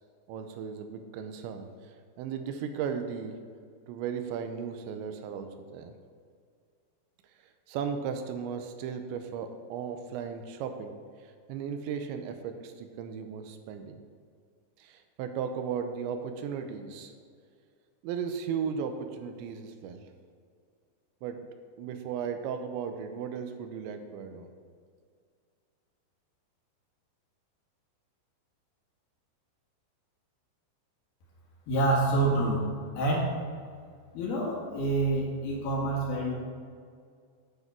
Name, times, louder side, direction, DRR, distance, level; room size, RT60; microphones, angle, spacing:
voice 1, 0.3-3.4 3.9-5.9 7.7-11.0 11.5-14.0 14.8-17.1 18.0-20.0 21.2-21.5 21.8-24.5, right 7 dB, 90° right, 7 dB, 3.1 m, -36 dB
voice 2, 31.7-32.7 33.0-33.3 34.1-36.3, right 2 dB, 65° left, -4 dB, 3.5 m, -27 dB
9.6 x 7.4 x 4.6 m, 2.1 s
omnidirectional pair, 5.1 m